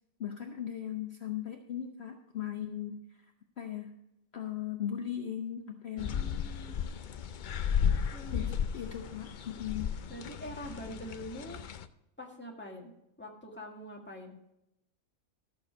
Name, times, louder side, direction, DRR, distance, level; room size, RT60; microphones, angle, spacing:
voice 1, 0.2-3.0 3.6-3.9 4.3-6.1 8.3-10.0, left 10 dB, 50° left, 4 dB, 1.0 m, -38 dB
voice 2, 5.9-6.9 8.1-8.5 10.1-11.6 12.2-12.9 13.2-14.4, equal, 10° left, -1 dB, 1.8 m, -44 dB
sound 1, 6.0-11.9, left 7 dB, 85° left, 0.4 m, -34 dB
13.5 x 6.9 x 5.1 m, 0.82 s
omnidirectional pair, 1.5 m